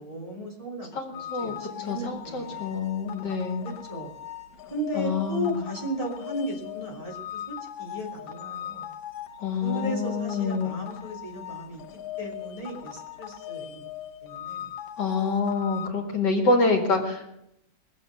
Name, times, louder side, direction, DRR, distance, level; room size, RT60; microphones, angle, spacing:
voice 1, 0.0-2.7 3.6-4.1 4.7-8.9 9.6-11.8 12.2-13.8 14.2-14.7, equal, 20° right, -3 dB, 3.2 m, -35 dB
voice 2, 0.9-3.7 5.0-5.6 9.4-10.8 15.0-17.3, left 3 dB, 65° left, 3 dB, 2.5 m, -27 dB
sound 1, 1.1-15.9, left 11 dB, 85° left, 1.7 m, -40 dB
22.0 x 7.7 x 6.3 m, 0.82 s
omnidirectional pair, 2.0 m